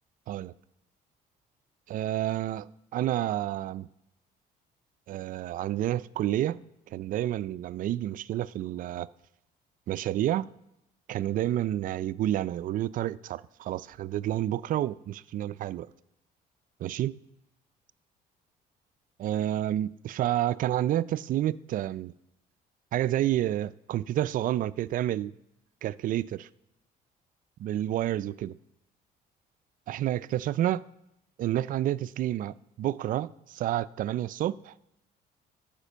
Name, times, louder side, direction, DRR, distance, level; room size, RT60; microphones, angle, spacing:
voice 1, 1.9-3.9 5.1-6.6 6.9-9.1 9.9-10.5 11.1-15.9 16.8-17.2 19.2-22.1 22.9-25.3 25.8-26.5 27.6-28.6 29.9-30.8 31.4-34.7, right 13 dB, 55° right, 0.4 m, -29 dB
12.0 x 5.1 x 7.3 m
cardioid pair, 110°, 17 cm